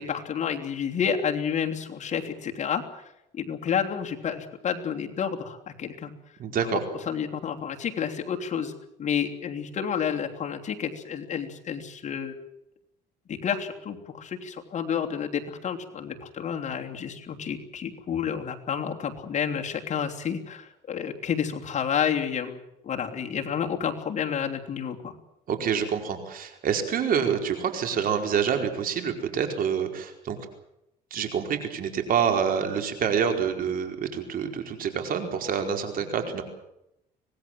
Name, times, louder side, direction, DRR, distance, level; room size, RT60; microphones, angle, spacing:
voice 1, 0.0-3.1 3.4-6.1 6.6-6.8 7.1-8.7 9.0-12.4 13.3-22.6 22.8-25.1 36.0-36.1, left 7 dB, 45° left, 3 dB, 3.1 m, -30 dB
voice 2, 6.4-6.8 25.5-30.4 31.1-36.4, right 7 dB, 55° right, 5 dB, 4.8 m, -27 dB
25.0 x 19.5 x 7.6 m, 0.84 s
cardioid pair, 110°, 17 cm